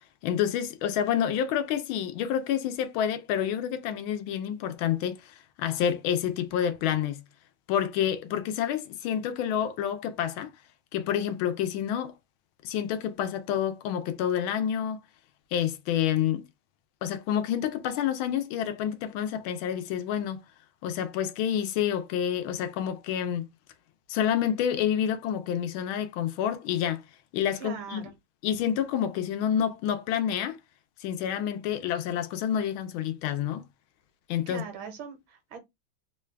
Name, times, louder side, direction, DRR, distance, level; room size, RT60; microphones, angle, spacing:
voice 1, 0.2-7.2 7.7-10.5 10.9-12.2 12.6-15.0 15.5-16.5 17.0-20.4 20.8-23.5 24.1-27.0 27.3-28.1 28.4-30.6 31.0-33.7 34.3-34.6, left 9 dB, 80° left, 1.4 m, -28 dB
voice 2, 27.5-28.1 34.5-35.6, right 6 dB, 75° right, 1.6 m, -40 dB
3.8 x 2.3 x 3.2 m
omnidirectional pair, 2.2 m